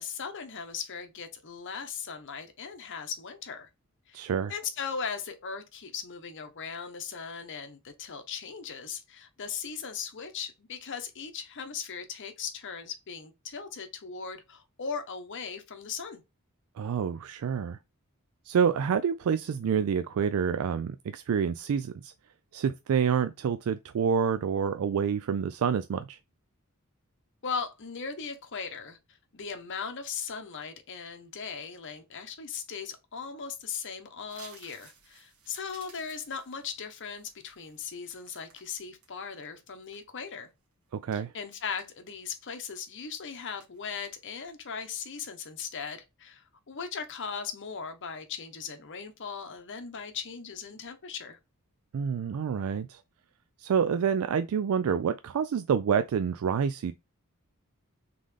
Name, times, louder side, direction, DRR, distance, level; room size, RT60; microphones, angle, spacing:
voice 1, 0.0-3.7 4.1-4.2 4.5-16.2 27.4-29.0 29.3-40.5 41.1-51.4, left 6 dB, 55° left, 0.9 m, -38 dB
voice 2, 4.1-4.5 16.8-17.8 18.5-22.1 22.5-26.2 40.9-41.3 51.9-53.0 53.6-56.9, right 7 dB, 70° right, 0.3 m, -28 dB
sound 1, 34.3-39.1 39.5-40.4 40.9-41.1 41.5-42.3 42.8-43.0 43.3-43.8 44.0-44.4 44.8-45.1, right 6 dB, 85° right, 1.6 m, -56 dB
3.8 x 3.7 x 3.2 m
head